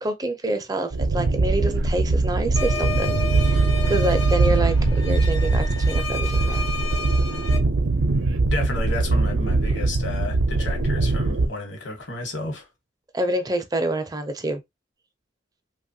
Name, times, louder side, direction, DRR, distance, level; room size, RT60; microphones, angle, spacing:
voice 1, 0.0-6.7 13.1-14.6, right 1 dB, 20° right, 0.4 m, -27 dB
sound 1, 0.9-11.5, right 3 dB, 80° right, 0.5 m, -21 dB
sound 2, 2.6-7.6, left 4 dB, 85° left, 1.0 m, -32 dB
voice 2, 8.5-12.7, left 2 dB, 65° left, 1.1 m, -32 dB
2.9 x 2.3 x 2.6 m
head